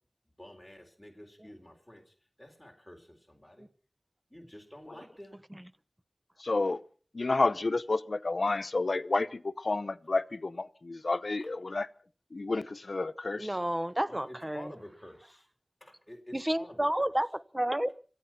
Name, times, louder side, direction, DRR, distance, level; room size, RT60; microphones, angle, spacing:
voice 1, 0.3-3.7 4.3-5.4 11.4-11.5 14.1-15.5 15.8-17.1, left 1 dB, 5° left, 4.0 m, -50 dB
voice 2, 6.4-6.8 7.1-11.9 12.3-13.5, left 3 dB, 85° left, 0.8 m, -30 dB
voice 3, 13.4-14.6 16.3-18.0, right 1 dB, 20° right, 0.9 m, -30 dB
26.5 x 9.3 x 5.8 m
wide cardioid pair, 40°, 0 cm